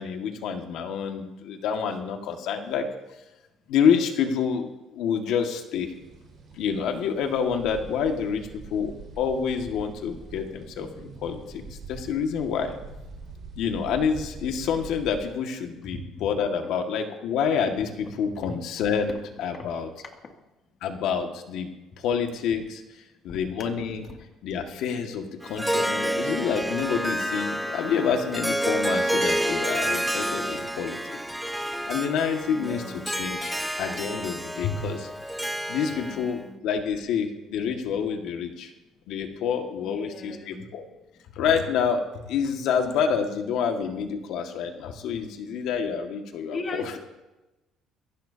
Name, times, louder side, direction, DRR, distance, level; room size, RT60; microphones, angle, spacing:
voice 1, 0.0-2.9 3.7-5.9 6.5-11.6 11.9-12.8 13.6-19.9 20.8-21.7 22.0-22.8 23.2-24.1 24.4-31.2 31.9-35.1 35.7-38.7 39.1-40.8 41.3-47.0, left 7 dB, 70° left, 3 dB, 1.9 m, -28 dB
sound 1, 5.9-15.2, right 3 dB, 45° right, 4.8 m, -44 dB
voice 2, 15.8-16.3 18.4-18.5 19.6-19.7 23.3-23.4 24.1-24.2 32.5-33.2 36.0-36.6 39.8-40.7 46.5-47.0, left 3 dB, 35° left, 1 dB, 2.5 m, -38 dB
Harp, 25.4-36.3, right 1 dB, 5° right, 0.9 m, -29 dB
22.5 x 16.5 x 2.9 m, 1.0 s
cardioid pair, 135°, 0 cm